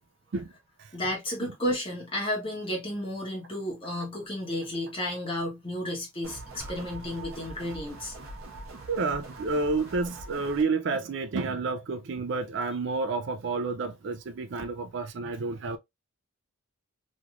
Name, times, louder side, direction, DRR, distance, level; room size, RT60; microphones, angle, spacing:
voice 1, 0.9-8.1, left 1 dB, 25° left, 1.3 m, -32 dB
sound 1, 6.2-10.6, right 2 dB, 80° right, 1.2 m, -43 dB
sound 2, 6.6-7.1, right 1 dB, 10° right, 0.7 m, -46 dB
voice 2, 8.9-15.8, right 3 dB, 55° right, 0.4 m, -30 dB
3.2 x 3.0 x 2.4 m
head